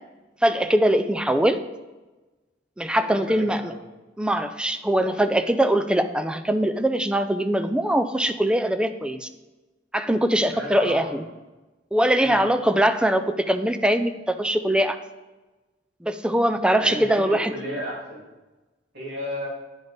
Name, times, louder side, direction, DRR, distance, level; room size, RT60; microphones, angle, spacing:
voice 1, 0.4-1.6 2.8-3.7 4.2-9.3 9.9-11.2 11.9-15.0 16.0-17.5, right 1 dB, 5° right, 9 dB, 0.4 m, -22 dB
voice 2, 3.0-3.9 10.5-11.3 12.2-12.4 16.8-18.2 18.9-19.5, equal, 65° right, -4 dB, 2.5 m, -34 dB
9.6 x 5.2 x 4.0 m, 1.1 s
head